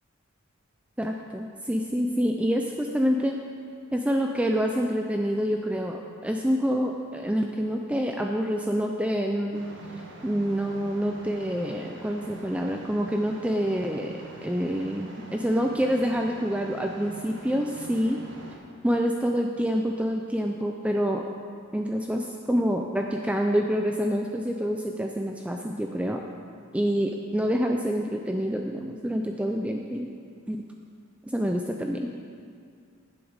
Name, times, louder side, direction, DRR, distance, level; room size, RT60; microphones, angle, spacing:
voice 1, 1.0-3.4 3.9-9.7 10.2-18.2 18.8-21.3 21.7-26.2 26.7-30.1 30.5-30.6 31.2-32.1, equal, 5° right, 2 dB, 0.4 m, -27 dB
sound 1, 9.5-18.6, right 2 dB, 60° right, 1.2 m, -44 dB
11.0 x 7.9 x 5.1 m, 2.2 s
head